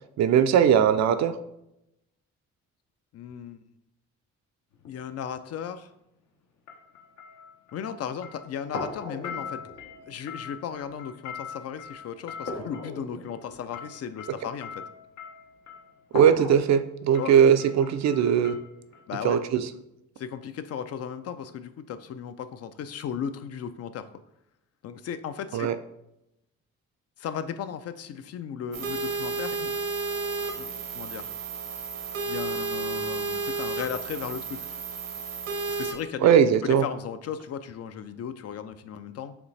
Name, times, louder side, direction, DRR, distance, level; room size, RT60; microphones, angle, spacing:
voice 1, 0.2-1.4 16.1-18.6 19.2-19.6 25.5-25.7 36.2-36.8, right 8 dB, 60° right, 10 dB, 0.5 m, -20 dB
voice 2, 3.1-3.6 4.9-5.9 7.7-9.7 10.1-14.9 17.2-17.4 19.1-19.4 20.2-24.1 24.8-25.7 27.2-29.8 30.4-31.3 32.3-34.6 35.7-36.3 36.6-39.4, left 8 dB, 55° left, 11 dB, 0.4 m, -36 dB
sound 1, 4.7-5.0 6.7-8.0 8.2-15.9 16.7-16.9 17.1-19.0 19.3-19.4, left 7 dB, 70° left, 0.9 m, -43 dB
sound 2, 8.7-10.8 12.4-14.7 16.1-16.6, left 2 dB, 90° left, 1.3 m, -38 dB
sound 3, 28.7-35.9, right 4 dB, 85° right, 1.0 m, -32 dB
5.0 x 3.1 x 3.3 m, 0.84 s
cardioid pair, 90°, 30 cm